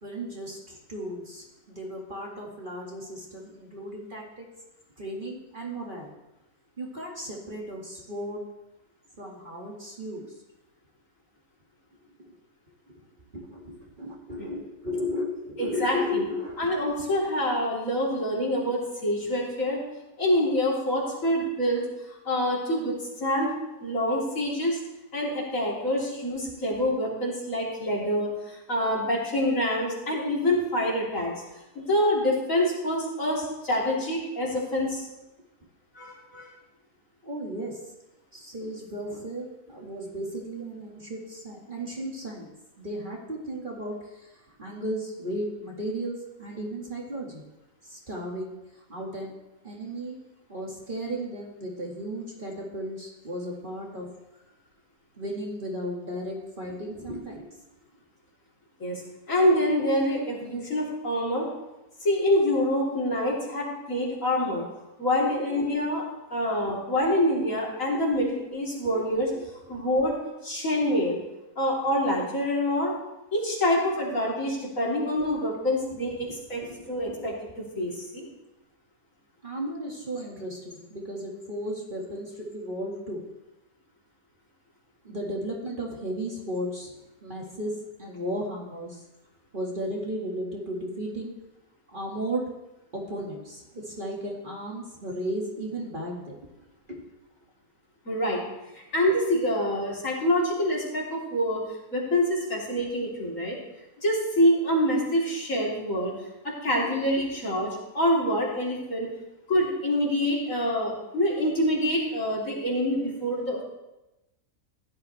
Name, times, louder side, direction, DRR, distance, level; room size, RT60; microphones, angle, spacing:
voice 1, 0.0-4.5 5.0-6.1 6.8-8.4 9.2-10.3 12.2-12.4 13.3-16.7 37.2-37.8 38.3-42.5 42.8-44.3 44.6-47.4 47.9-48.6 48.9-49.3 49.6-50.2 50.5-54.1 55.2-57.5 65.5-65.6 66.7-66.8 68.8-69.0 69.3-69.4 76.3-77.3 79.4-83.2 85.0-89.0 89.5-91.3 91.9-92.5 92.9-96.4 96.9-97.1, equal, 35° right, -2 dB, 2.1 m, -35 dB
voice 2, 15.6-16.3 16.6-19.8 20.2-21.8 22.3-23.5 23.8-24.8 25.1-31.3 31.8-35.1 36.0-36.5 58.8-59.0 59.3-61.5 62.0-64.6 65.0-66.0 66.3-69.3 69.7-70.2 70.4-71.2 71.6-72.9 73.3-76.6 76.9-78.3 98.1-98.4 98.9-101.6 101.9-103.6 104.0-106.1 106.4-107.7 107.9-109.1 109.5-113.6, left 1 dB, 60° left, -4 dB, 3.7 m, -26 dB
16.0 x 12.0 x 3.3 m, 0.97 s
omnidirectional pair, 1.6 m